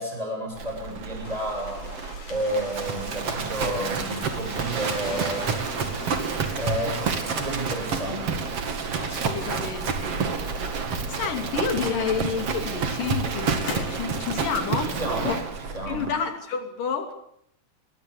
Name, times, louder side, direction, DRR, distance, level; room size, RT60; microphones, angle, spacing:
voice 1, 0.0-1.9 2.3-5.5 6.6-8.4 14.8-15.4 15.7-16.1, right 1 dB, 10° right, 2 dB, 7.7 m, -31 dB
Livestock farm animals working animals, 0.5-16.1, right 5 dB, 50° right, 3.1 m, -29 dB
sound 1, 1.2-8.5 8.9-10.9 11.8-11.9 12.6-14.1, left 3 dB, 60° left, 5.3 m, -41 dB
sound 2, 5.0-15.3, right 3 dB, 30° right, 2.8 m, -41 dB
voice 2, 9.0-15.4 15.9-17.1, left 6 dB, 85° left, 6 dB, 4.4 m, -30 dB
22.0 x 21.5 x 8.5 m, 0.71 s
omnidirectional pair, 3.7 m